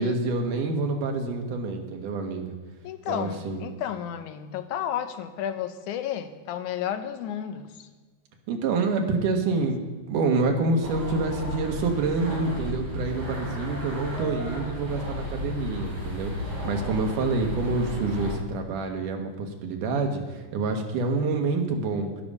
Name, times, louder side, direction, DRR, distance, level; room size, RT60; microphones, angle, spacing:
voice 1, 0.0-2.5 3.1-3.6 8.5-9.8 10.1-22.1, right 3 dB, 85° right, 3 dB, 2.8 m, -27 dB
voice 2, 2.8-7.9, left 9 dB, 80° left, 9 dB, 2.2 m, -32 dB
sound 1, 10.8-18.4, equal, 40° right, 3.7 m, -33 dB
11.0 x 11.0 x 5.3 m, 1.3 s
omnidirectional pair, 3.6 m